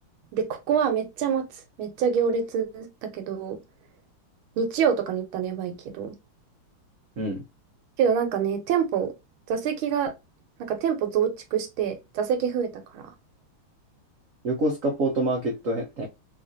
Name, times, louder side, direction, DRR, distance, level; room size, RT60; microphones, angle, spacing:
voice 1, 0.3-1.4 1.8-3.6 4.6-6.1 8.0-9.1 9.5-10.1 10.6-13.1, right 7 dB, 80° right, 1.5 m, -26 dB
voice 2, 14.4-16.1, right 1 dB, 65° right, 0.8 m, -26 dB
3.6 x 2.4 x 2.5 m
omnidirectional pair, 2.3 m